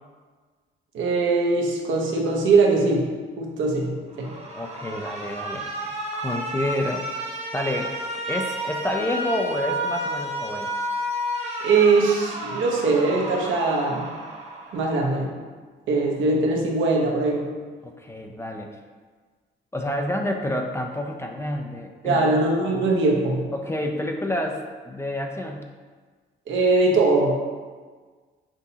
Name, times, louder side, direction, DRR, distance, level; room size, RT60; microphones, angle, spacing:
voice 1, 0.9-3.1 3.4-4.3 11.6-14.1 14.7-15.3 15.9-17.5 22.0-23.4 26.5-27.4, right 3 dB, 75° right, -1 dB, 0.9 m, -21 dB
Alarm, 4.1-15.2, right 1 dB, 30° right, 0.8 m, -31 dB
voice 2, 4.6-7.2 7.5-7.9 8.3-10.7 17.8-18.7 19.7-22.4 23.5-25.6, left 1 dB, 15° left, 2 dB, 0.4 m, -29 dB
6.0 x 2.7 x 2.7 m, 1.5 s
cardioid pair, 90°, 20 cm